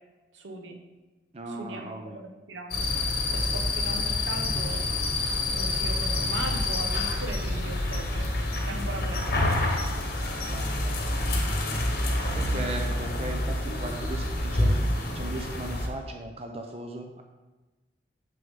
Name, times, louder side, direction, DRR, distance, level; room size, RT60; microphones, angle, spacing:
voice 1, 0.3-0.8 1.5-2.9 3.2-4.8 5.5-8.3 8.6-9.8, right 2 dB, 85° right, 3 dB, 1.0 m, -39 dB
voice 2, 1.3-2.2 3.4-3.6 8.7-9.0 10.5-10.9 11.6-11.8 12.2-14.8 15.1-17.2, right 2 dB, 35° right, 4 dB, 0.5 m, -38 dB
sound 1, 2.7-15.9, left 2 dB, 50° left, 1.1 m, -27 dB
6.9 x 6.3 x 3.6 m, 1.2 s
head